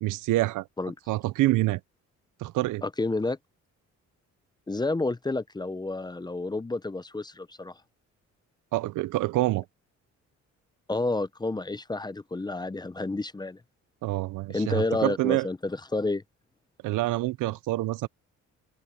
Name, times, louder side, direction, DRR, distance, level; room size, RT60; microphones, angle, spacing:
voice 1, 0.0-0.7 1.1-1.8 2.4-2.8 8.7-9.6 14.0-15.5 16.8-18.1, right 18 dB, 85° right, 0.7 m, -26 dB
voice 2, 2.8-3.4 4.7-7.8 10.9-13.6 14.5-16.2, left 2 dB, 15° left, 0.7 m, -30 dB
open air
cardioid pair, 90°, 30 cm